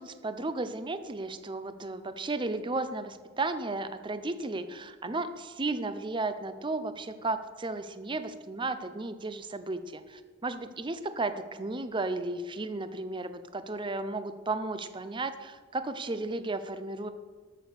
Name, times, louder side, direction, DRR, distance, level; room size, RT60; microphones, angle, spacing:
voice 1, 0.0-17.1, right 2 dB, 25° right, 10 dB, 0.6 m, -34 dB
13.5 x 6.2 x 6.7 m, 1.4 s
head